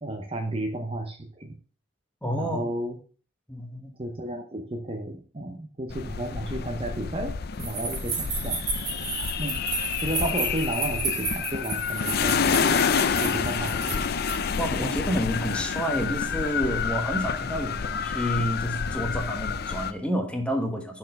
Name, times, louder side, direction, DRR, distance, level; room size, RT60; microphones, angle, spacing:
voice 1, 0.0-1.6 2.2-3.0 4.0-8.6 9.4-9.6 10.0-12.5 13.1-14.1, right 1 dB, 30° right, 5 dB, 0.8 m, -33 dB
voice 2, 2.2-2.7 3.5-3.9 14.6-21.0, equal, 5° left, 3 dB, 1.2 m, -29 dB
sound 1, 5.9-19.9, left 6 dB, 55° left, 0.5 m, -28 dB
sound 2, 7.6-14.6, right 4 dB, 55° right, 2.5 m, -32 dB
6.5 x 4.4 x 5.2 m, 0.41 s
head